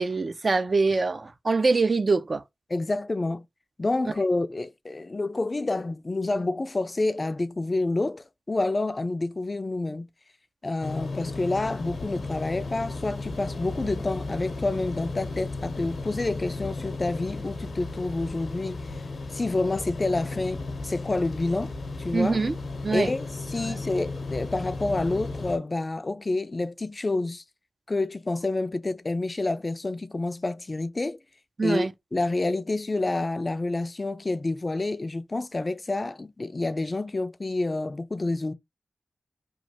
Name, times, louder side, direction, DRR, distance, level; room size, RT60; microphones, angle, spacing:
voice 1, 0.0-2.4 22.1-22.6 22.8-23.1 23.6-23.8 31.6-31.9, right 3 dB, 55° right, 0.4 m, -24 dB
voice 2, 2.7-3.4 3.8-10.1 10.6-18.8 19.3-21.7 22.0-22.4 22.9-27.4 27.9-31.2 31.6-31.9 32.1-38.5, left 2 dB, 40° left, 0.3 m, -28 dB
sound 1, 10.8-25.6, left 3 dB, 85° left, 0.7 m, -35 dB
3.0 x 2.3 x 2.8 m
cardioid pair, 55°, 0 cm